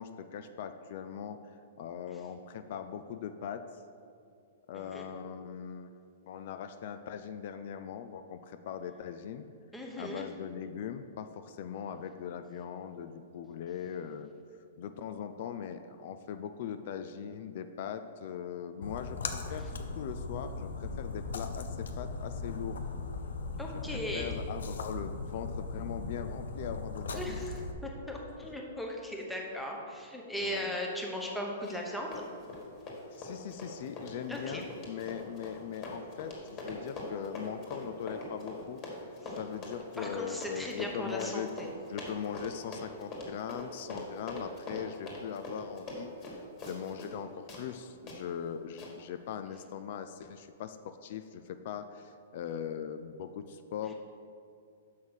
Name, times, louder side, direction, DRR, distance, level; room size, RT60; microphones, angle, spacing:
voice 1, 0.0-3.8 4.7-9.5 10.0-14.3 14.8-22.8 23.9-27.5 30.4-30.7 33.1-39.1 39.4-41.5 41.9-53.9, left 8 dB, 50° left, 9 dB, 0.4 m, -40 dB
voice 2, 4.7-5.0 9.7-10.2 23.6-24.4 27.1-27.5 27.8-32.2 34.3-34.7 39.2-39.4 40.0-41.7, equal, ahead, -1 dB, 0.9 m, -38 dB
Splash splatter, 18.8-27.7, left 3 dB, 90° left, 0.7 m, -38 dB
Run, 31.6-47.2 47.5-47.6 48.1-48.2 48.8-48.9, left 2 dB, 25° left, 1.7 m, -42 dB
6.4 x 5.5 x 6.3 m, 2.4 s
hypercardioid pair, 160°, 0 cm